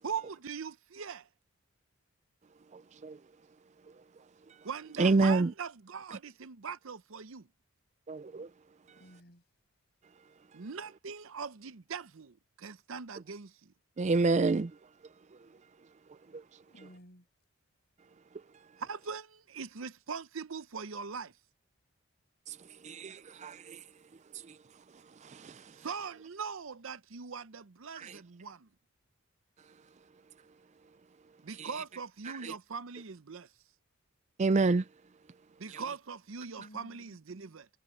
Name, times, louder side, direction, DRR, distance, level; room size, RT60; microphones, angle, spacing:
voice 1, 0.0-1.3 4.6-7.5 10.5-13.7 18.8-21.3 25.7-28.7 31.4-33.5 35.6-37.7, right 5 dB, 65° right, 0.7 m, -41 dB
voice 2, 2.7-3.2 5.0-5.5 8.1-8.5 14.0-14.7 16.3-16.4 22.5-22.6 22.8-23.8 24.5-24.6 25.2-25.7 28.0-28.2 31.6-31.7 32.3-32.5 34.4-34.8 35.7-35.8, right 3 dB, 30° right, 0.4 m, -28 dB
voice 3, 9.0-9.4 16.7-17.3 36.6-37.5, equal, 45° left, 7.1 m, -56 dB
head